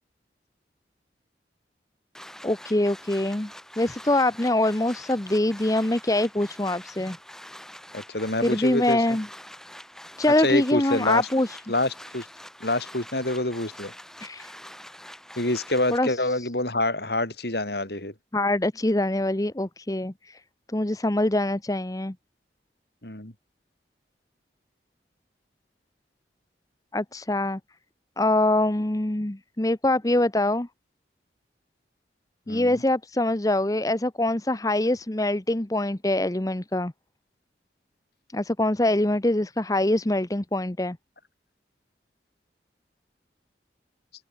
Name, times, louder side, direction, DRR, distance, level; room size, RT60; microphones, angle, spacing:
sound 1, 2.1-16.0, left 1 dB, 5° left, 7.2 m, -45 dB
voice 1, 2.4-3.5 3.8-7.2 8.4-9.3 10.2-11.6 14.2-14.5 15.9-16.5 18.3-20.4 20.7-22.1 26.9-27.6 28.2-30.7 32.5-36.9 38.3-41.0, left 1 dB, 20° left, 0.9 m, -24 dB
voice 2, 7.9-9.0 10.4-11.3 11.7-12.3 12.6-13.9 15.4-18.1 23.0-23.3 32.5-32.8, left 2 dB, 60° left, 5.1 m, -26 dB
open air
head